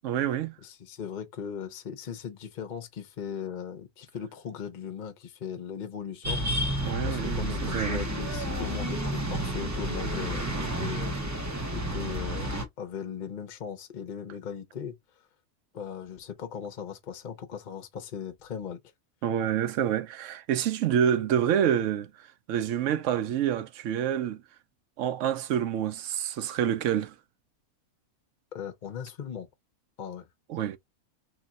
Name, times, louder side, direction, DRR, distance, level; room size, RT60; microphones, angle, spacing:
voice 1, 0.0-0.5 6.8-8.0 19.2-22.1 22.5-24.4 25.0-27.1 30.5-30.8, right 9 dB, 65° right, 0.9 m, -27 dB
voice 2, 0.6-6.5 7.0-11.4 11.7-15.0 15.7-18.8 28.5-29.5 30.0-30.3, left 7 dB, 40° left, 0.7 m, -38 dB
sound 1, 6.2-12.7, right 1 dB, 20° right, 0.5 m, -31 dB
3.0 x 2.3 x 4.0 m
omnidirectional pair, 1.5 m